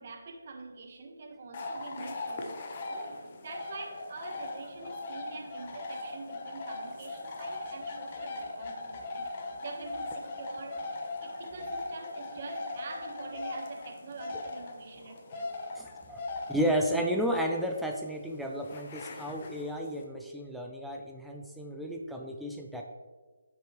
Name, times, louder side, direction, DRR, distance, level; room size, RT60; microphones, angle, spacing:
voice 1, 0.0-2.6 2.9-9.3 9.6-10.9 11.2-15.6, right 3 dB, 40° right, 4 dB, 1.0 m, -45 dB
sound 1, 1.5-20.0, left 2 dB, 35° left, 0.9 m, -40 dB
voice 2, 15.8-22.8, equal, ahead, 1 dB, 0.4 m, -32 dB
8.9 x 6.1 x 3.0 m, 1.4 s
figure-of-eight pair, 160°, 0 cm